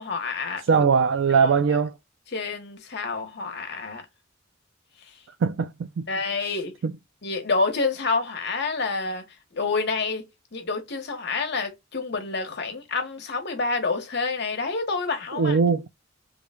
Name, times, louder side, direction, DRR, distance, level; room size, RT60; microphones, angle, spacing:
voice 1, 0.0-0.9 1.4-1.8 2.3-4.1 6.1-6.7 7.2-9.2 9.5-15.6, left 4 dB, 55° left, 1.0 m, -28 dB
voice 2, 0.7-1.9 5.4-6.1 6.8-6.9 15.3-15.9, right 5 dB, 65° right, 0.3 m, -21 dB
3.1 x 2.1 x 3.4 m
head